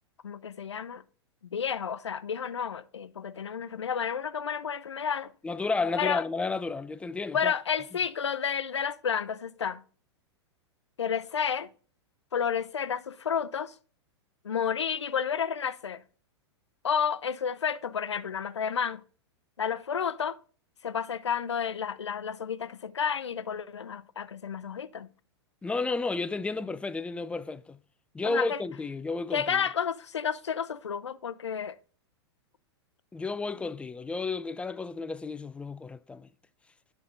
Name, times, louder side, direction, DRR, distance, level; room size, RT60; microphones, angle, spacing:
voice 1, 0.2-1.0 1.5-5.3 6.0-6.2 7.3-9.8 11.0-11.7 12.3-13.7 14.4-16.0 16.8-19.0 19.6-20.4 20.8-25.1 28.2-28.6 29.3-31.8, left 7 dB, 85° left, 0.5 m, -31 dB
voice 2, 5.4-7.5 25.6-27.8 28.1-29.6 33.1-36.3, left 3 dB, 10° left, 0.3 m, -32 dB
10.5 x 5.8 x 3.8 m
hypercardioid pair, 105°, 14 cm